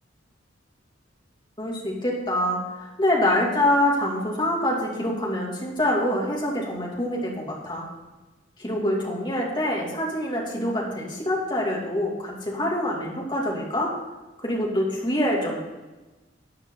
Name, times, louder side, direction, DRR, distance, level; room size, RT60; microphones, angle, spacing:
voice 1, 1.6-7.8 8.6-13.9 14.4-15.6, left 1 dB, 25° left, -3 dB, 2.7 m, -25 dB
14.0 x 8.9 x 4.0 m, 1.1 s
head